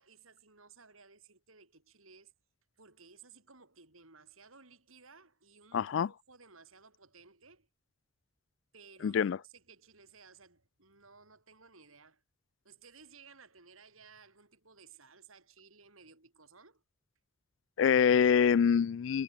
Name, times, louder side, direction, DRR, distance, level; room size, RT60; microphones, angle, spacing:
voice 1, 0.0-2.3 2.8-7.7 8.7-12.2 12.6-16.8, right 5 dB, 85° right, 7.3 m, -58 dB
voice 2, 5.7-6.1 9.0-9.4 17.8-19.2, left 7 dB, 65° left, 0.3 m, -25 dB
head